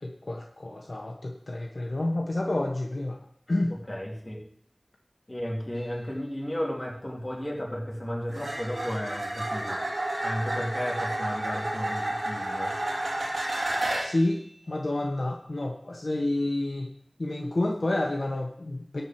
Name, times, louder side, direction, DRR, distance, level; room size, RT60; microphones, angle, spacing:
voice 1, 0.0-3.2 3.5-3.8 14.0-16.9 17.2-19.0, left 1 dB, 70° left, 1 dB, 1.1 m, -29 dB
voice 2, 3.7-4.4 5.3-9.8 10.2-12.7, equal, 30° left, -2 dB, 3.1 m, -33 dB
sound 1, 5.8-6.0 8.3-14.3 17.9-18.2, right 1 dB, 85° right, 2.9 m, -31 dB
12.5 x 4.5 x 7.7 m, 0.67 s
wide cardioid pair, 40°, 0 cm